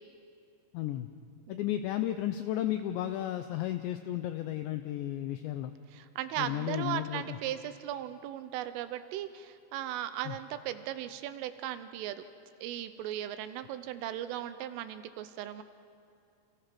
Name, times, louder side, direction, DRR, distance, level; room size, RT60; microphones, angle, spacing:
voice 1, 0.7-1.1 1.5-5.7 6.4-7.4 10.3-10.4, left 13 dB, 85° left, 9 dB, 2.5 m, -33 dB
voice 2, 5.9-12.2 12.6-15.6, right 12 dB, 80° right, 11 dB, 3.2 m, -37 dB
29.5 x 28.0 x 6.0 m, 2.4 s
omnidirectional pair, 6.0 m